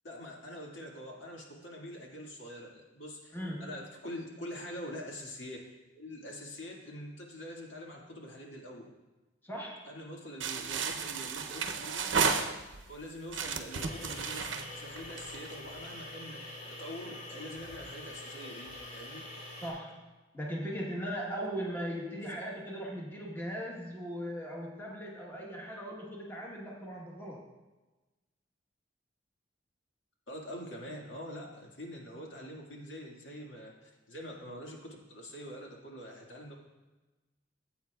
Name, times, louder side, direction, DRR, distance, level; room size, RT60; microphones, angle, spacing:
voice 1, 0.0-5.6 5.9-8.9 9.9-12.5 12.9-16.4 16.8-19.2 30.3-36.5, equal, 85° left, -1 dB, 1.9 m, -45 dB
voice 2, 3.3-3.7 9.4-9.8 19.6-27.5, equal, 10° left, -2 dB, 1.2 m, -39 dB
sound 1, 10.4-12.9 13.3-15.5, right 6 dB, 80° right, 0.7 m, -33 dB
sound 2, 13.8-19.7, left 1 dB, 45° left, 3.2 m, -45 dB
15.5 x 8.4 x 2.3 m, 1.1 s
head